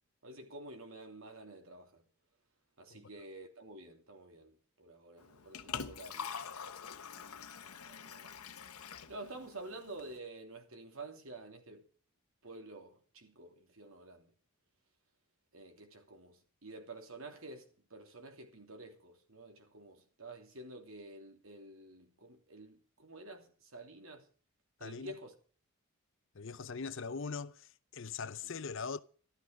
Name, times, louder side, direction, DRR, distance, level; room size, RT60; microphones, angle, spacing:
voice 1, 0.2-2.0 2.8-6.3 7.1-8.4 9.1-11.8 12.4-14.3 15.5-24.3 24.8-25.3, right 2 dB, 65° right, 3.0 m, -50 dB
Liquid, 5.2-10.2, left 7 dB, 85° left, 1.1 m, -45 dB
voice 2, 24.8-25.1 26.3-29.0, left 5 dB, 55° left, 0.7 m, -41 dB
13.0 x 13.0 x 5.2 m
head